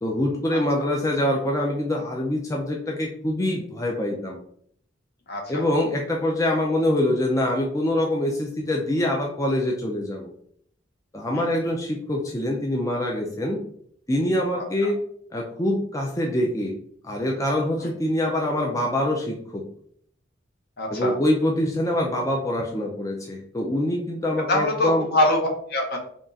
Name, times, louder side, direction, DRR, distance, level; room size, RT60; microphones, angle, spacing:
voice 1, 0.0-4.4 5.5-10.3 11.1-13.6 14.1-15.0 15.3-16.7 17.0-19.6 20.9-25.1, left 1 dB, 15° left, 0 dB, 0.4 m, -25 dB
voice 2, 5.3-5.6 11.3-11.4 17.8-17.9 20.8-21.1 24.5-26.0, left 1 dB, 55° left, 1 dB, 1.0 m, -24 dB
3.6 x 2.4 x 3.9 m, 0.64 s
head